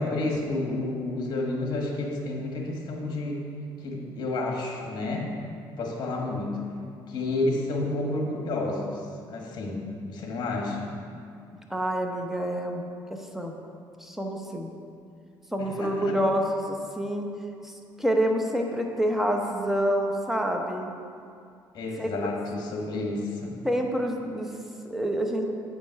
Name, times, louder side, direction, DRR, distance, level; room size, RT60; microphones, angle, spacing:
voice 1, 0.0-3.5 3.8-5.3 5.8-6.7 7.1-10.9 15.6-16.2 21.7-23.6, left 2 dB, 55° left, 0 dB, 1.4 m, -30 dB
voice 2, 11.7-12.8 13.3-13.6 14.0-14.7 15.5-17.3 17.6-17.7 18.0-20.9 22.0-22.1 23.6-24.5 24.8-25.4, equal, 5° right, 2 dB, 0.9 m, -27 dB
8.5 x 5.2 x 4.6 m, 2.4 s
cardioid pair, 110°, 8 cm